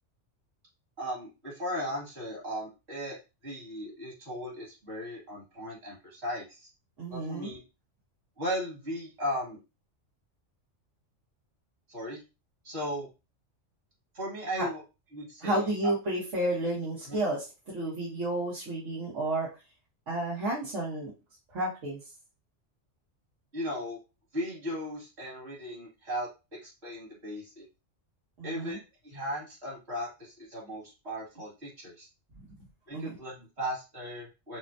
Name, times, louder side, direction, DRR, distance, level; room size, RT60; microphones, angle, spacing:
voice 1, 1.0-3.2 3.4-6.6 7.1-7.6 8.4-9.6 11.9-12.2 12.6-13.1 14.1-14.8 15.1-15.9 17.1-17.2 23.5-24.0 24.3-26.3 26.6-27.7 28.4-32.1 32.9-34.6, equal, 60° right, -4 dB, 2.5 m, -36 dB
voice 2, 7.0-7.5 14.6-14.7 15.4-19.5 20.1-21.1 21.5-22.0 28.4-28.8 32.3-32.5 32.9-33.2, right 1 dB, 75° right, -6 dB, 1.6 m, -31 dB
5.9 x 2.2 x 2.7 m, 0.28 s
omnidirectional pair, 1.3 m